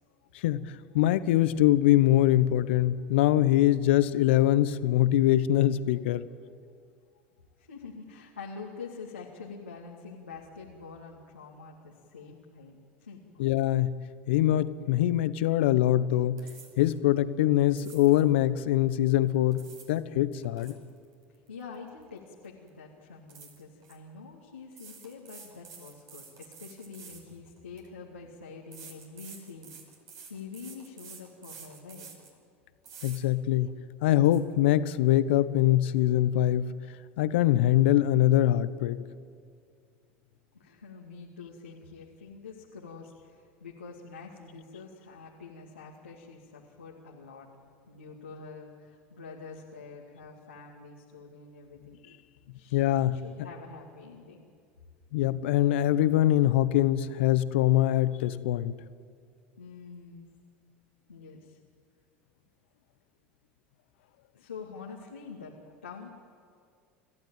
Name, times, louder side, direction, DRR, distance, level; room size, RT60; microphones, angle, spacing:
voice 1, 0.3-6.2 13.4-13.9 14.3-16.4 16.8-20.7 33.0-36.7 37.2-39.0 52.7-53.2 55.1-58.7, left 13 dB, 70° left, 14 dB, 1.0 m, -23 dB
voice 2, 7.6-13.5 21.5-29.7 30.3-32.1 40.5-47.5 47.9-52.0 52.5-54.5 59.6-60.3 61.1-61.6 64.3-65.6 65.8-66.1, left 5 dB, 90° left, -3 dB, 2.3 m, -46 dB
sound 1, 16.4-17.0 17.7-18.3 19.3-20.0 20.3-22.2 22.4-22.7 23.3-24.0 24.7-27.9 28.7-32.3 32.8-33.2 33.7-33.8 34.1-34.4, right 6 dB, 50° right, 5.5 m, -49 dB
28.5 x 15.0 x 9.0 m, 2.2 s
hypercardioid pair, 80°, 6 cm